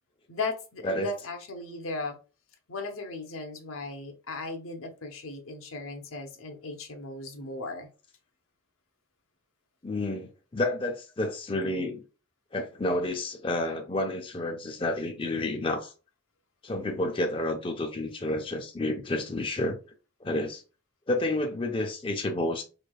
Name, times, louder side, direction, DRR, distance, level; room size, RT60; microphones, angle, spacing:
voice 1, 0.3-2.2 2.7-7.9, left 3 dB, 80° left, 0.9 m, -36 dB
voice 2, 9.8-12.0 12.5-15.9 16.6-19.8 20.2-20.6 21.1-22.6, left 1 dB, 25° left, 0.5 m, -30 dB
4.5 x 3.2 x 2.3 m
head